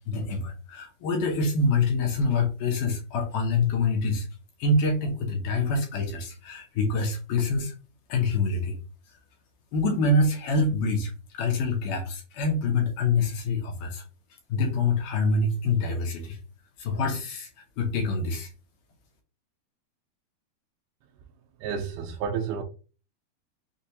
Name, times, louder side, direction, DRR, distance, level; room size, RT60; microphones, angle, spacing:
voice 1, 0.1-4.3 4.6-7.7 8.1-8.8 9.7-14.0 14.5-16.4 16.8-17.5 17.8-18.5, left 3 dB, 70° left, 2.2 m, -26 dB
voice 2, 21.6-22.6, right 6 dB, 85° right, 2.5 m, -30 dB
6.5 x 2.4 x 2.8 m
omnidirectional pair, 4.6 m